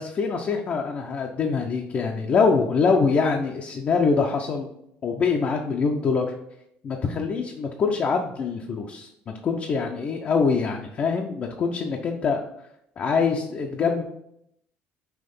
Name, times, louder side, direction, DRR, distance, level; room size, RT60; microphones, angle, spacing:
voice 1, 0.0-4.7 5.0-6.3 6.8-9.1 9.4-12.4 13.0-14.0, left 5 dB, 40° left, 1 dB, 0.6 m, -24 dB
5.7 x 3.1 x 5.3 m, 0.77 s
cardioid pair, 105°, 4 cm